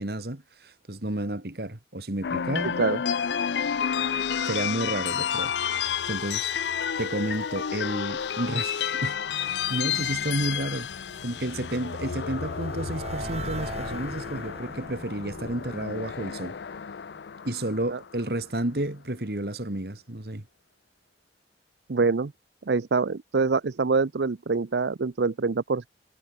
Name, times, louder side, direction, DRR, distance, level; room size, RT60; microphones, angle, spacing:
voice 1, 0.0-2.8 4.5-6.5 7.0-10.9 11.2-16.6 17.5-20.4, right 1 dB, 60° right, 2.2 m, -31 dB
sound 1, 2.2-18.4, left 8 dB, 75° left, 0.5 m, -31 dB
sound 2, 10.2-17.1, right 2 dB, 35° right, 2.4 m, -41 dB
voice 2, 21.9-22.3 22.7-25.9, right 4 dB, 75° right, 0.6 m, -25 dB
head